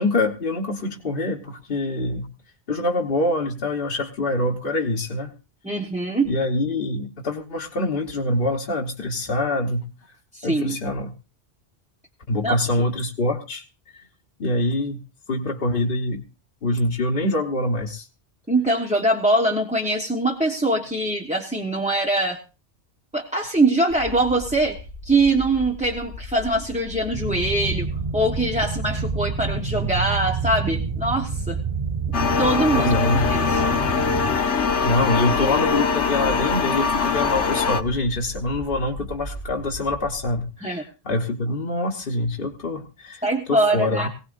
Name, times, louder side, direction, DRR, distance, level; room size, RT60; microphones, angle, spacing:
voice 1, 0.0-2.3 2.7-5.3 6.2-9.9 10.4-11.1 12.3-13.6 13.9-14.0 14.4-15.0 15.3-16.2 16.6-18.1 32.7-33.3 34.8-43.2 43.5-44.1, left 2 dB, 50° left, -1 dB, 1.4 m, -25 dB
voice 2, 5.6-6.3 10.3-10.8 12.4-12.6 18.5-22.4 23.1-24.8 25.0-27.9 28.1-31.6 32.4-33.6 40.6-40.8 43.2-44.1, right 2 dB, 5° right, 0 dB, 1.1 m, -23 dB
sound 1, 23.9-40.4, left 1 dB, 75° right, 5.3 m, -38 dB
sound 2, 27.1-34.4, right 5 dB, 35° right, 0.7 m, -28 dB
sound 3, 32.1-37.8, left 5 dB, 80° left, 1.3 m, -22 dB
19.5 x 17.5 x 2.6 m, 0.32 s
omnidirectional pair, 1.2 m